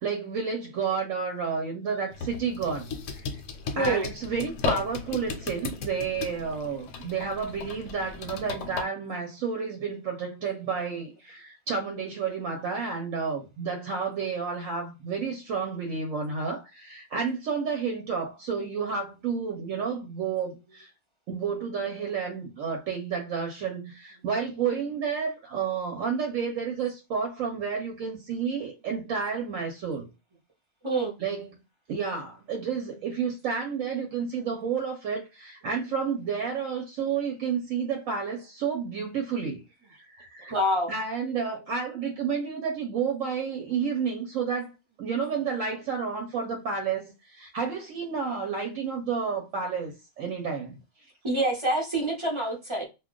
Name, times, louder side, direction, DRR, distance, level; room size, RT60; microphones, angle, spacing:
voice 1, 0.0-3.2 3.8-20.9 21.3-30.1 31.2-31.5 31.9-39.6 39.9-40.5 40.9-50.8, right 6 dB, 75° right, 1.0 m, -31 dB
sound 1, 2.1-8.8, left 4 dB, 70° left, 0.9 m, -35 dB
voice 2, 3.7-4.1 30.8-31.2 40.5-40.9 51.2-52.9, right 1 dB, 30° right, 0.6 m, -26 dB
2.4 x 2.2 x 3.6 m
omnidirectional pair, 1.5 m